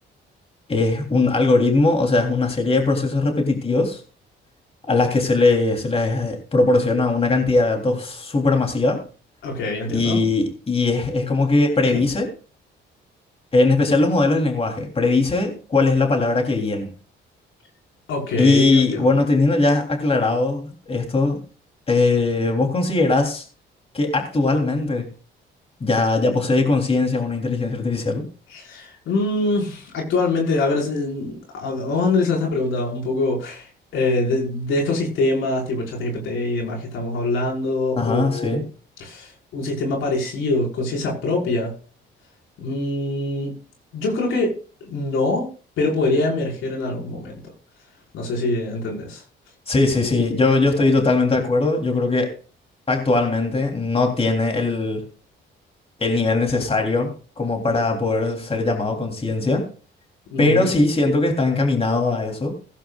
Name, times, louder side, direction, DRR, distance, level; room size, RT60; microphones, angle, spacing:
voice 1, 0.7-4.0 4.9-9.0 9.9-12.3 13.5-16.9 18.4-21.4 21.9-23.4 23.9-25.1 25.8-28.3 38.0-38.6 49.7-52.3 52.9-55.0 56.0-59.6 60.4-62.5, left 3 dB, 30° left, 2 dB, 3.5 m, -20 dB
voice 2, 9.4-10.3 11.9-12.0 18.1-19.2 28.5-38.6 39.0-41.7 42.6-43.5 43.9-45.5 45.8-47.4 48.1-49.2 50.8-50.9 60.3-60.7, left 2 dB, 85° left, -1 dB, 5.5 m, -24 dB
17.0 x 15.0 x 2.5 m, 0.38 s
cardioid pair, 90°, 20 cm